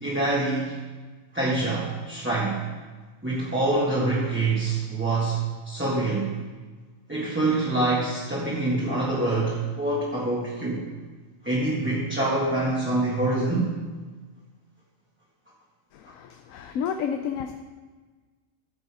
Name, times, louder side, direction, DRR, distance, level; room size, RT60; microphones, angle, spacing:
voice 1, 0.0-0.8 1.3-2.7 3.2-6.4 7.1-10.8 11.4-13.7, right 2 dB, 10° right, -7 dB, 1.7 m, -25 dB
voice 2, 15.9-17.6, left 7 dB, 85° left, 6 dB, 1.0 m, -31 dB
13.0 x 6.8 x 4.8 m, 1.4 s
omnidirectional pair, 1.3 m